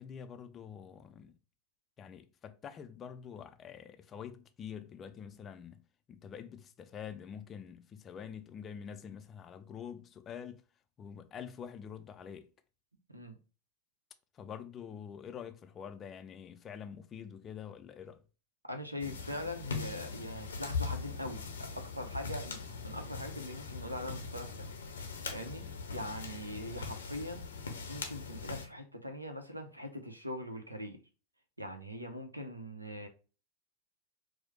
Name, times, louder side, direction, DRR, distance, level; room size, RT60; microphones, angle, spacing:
voice 1, 0.0-1.4 2.0-10.6 11.0-12.5 14.3-18.2, left 7 dB, 30° left, 0.3 m, -46 dB
voice 2, 18.7-24.7 25.3-25.6 25.9-27.5 27.9-31.0 31.6-33.1, equal, 90° right, 0.6 m, -42 dB
sound 1, 19.0-28.7, left 4 dB, 75° left, 0.6 m, -41 dB
4.6 x 2.0 x 2.9 m
figure-of-eight pair, 90°, 0 cm